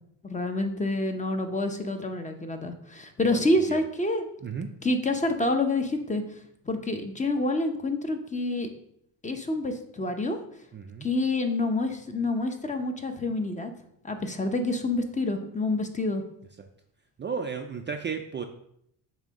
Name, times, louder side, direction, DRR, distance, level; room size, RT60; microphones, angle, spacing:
voice 1, 0.2-4.3 4.8-6.4 6.7-8.7 9.2-10.4 11.0-13.7 14.0-16.2, left 2 dB, 15° left, 5 dB, 0.7 m, -27 dB
voice 2, 3.3-3.8 4.4-4.7 10.7-11.1 17.2-18.4, right 6 dB, 25° right, 4 dB, 0.4 m, -34 dB
7.2 x 2.8 x 5.1 m, 0.73 s
cardioid pair, 105°, 43 cm